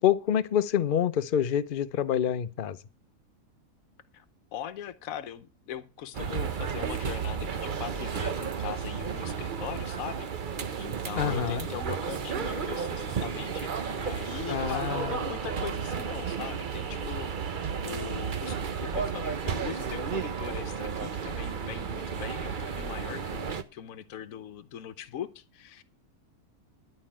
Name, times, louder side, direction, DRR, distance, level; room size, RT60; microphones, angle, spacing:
voice 1, 0.0-2.8 11.1-11.7 14.5-15.2, left 9 dB, 50° left, 0.7 m, -27 dB
voice 2, 4.5-25.8, left 10 dB, 70° left, 1.2 m, -41 dB
sound 1, 6.1-23.6, right 6 dB, 40° right, 0.8 m, -33 dB
11.5 x 5.3 x 8.7 m
omnidirectional pair, 1.6 m